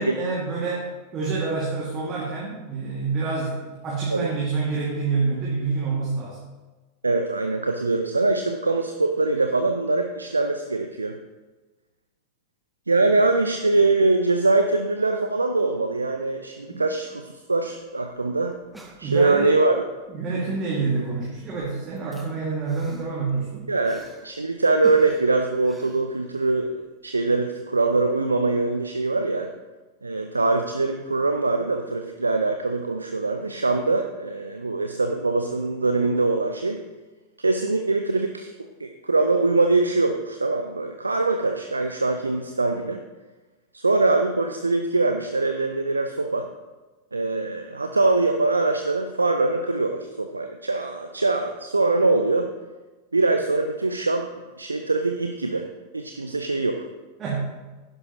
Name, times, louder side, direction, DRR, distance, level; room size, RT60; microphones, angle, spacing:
voice 1, 0.0-6.4 16.7-16.8 19.0-19.6 20.1-23.6 57.2-57.4, right 4 dB, 30° right, -5 dB, 2.3 m, -27 dB
voice 2, 7.0-11.2 12.9-18.6 19.0-19.7 23.7-29.5 30.0-36.8 37.4-38.5 38.8-43.0 43.7-46.5 47.1-52.5 53.1-54.3 54.6-55.7 55.9-56.9, right 3 dB, 80° right, 6 dB, 0.6 m, -23 dB
sound 1, 17.8-17.9 18.1-18.2 18.5-19.5 20.6-20.9 21.2-24.4 24.8-26.7 27.1-27.2, right 2 dB, 5° right, 1.4 m, -46 dB
11.0 x 11.0 x 3.0 m, 1.2 s
figure-of-eight pair, 90°, 0 cm